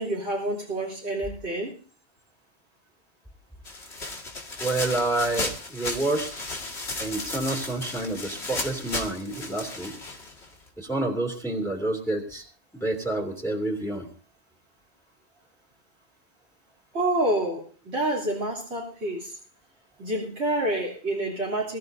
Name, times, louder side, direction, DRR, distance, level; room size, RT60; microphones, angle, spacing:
voice 1, 0.0-1.7 16.9-19.4 20.0-21.8, right 1 dB, 90° right, -3 dB, 3.4 m, -28 dB
sound 1, 3.7-10.7, left 2 dB, 75° left, 2.5 m, -34 dB
voice 2, 4.6-6.3 7.0-9.9 10.8-12.4 12.7-14.1, right 2 dB, ahead, -1 dB, 2.8 m, -28 dB
23.0 x 14.0 x 2.7 m, 0.38 s
omnidirectional pair, 1.1 m